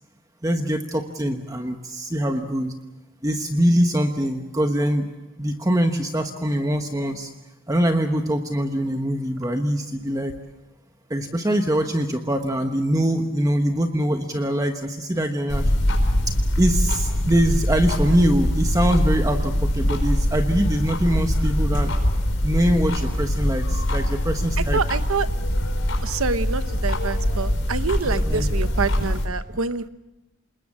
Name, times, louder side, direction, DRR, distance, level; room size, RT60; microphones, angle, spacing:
voice 1, 0.4-2.8 3.2-5.1 5.4-7.3 7.7-10.3 11.1-15.7 16.3-21.9 22.4-24.8 28.1-28.5, equal, 15° right, 5 dB, 1.1 m, -23 dB
sound 1, 15.5-29.3, equal, 65° left, 4.7 m, -23 dB
voice 2, 24.7-25.3 26.0-29.9, right 4 dB, 80° right, 12 dB, 1.0 m, -26 dB
27.0 x 21.0 x 7.3 m, 1.0 s
head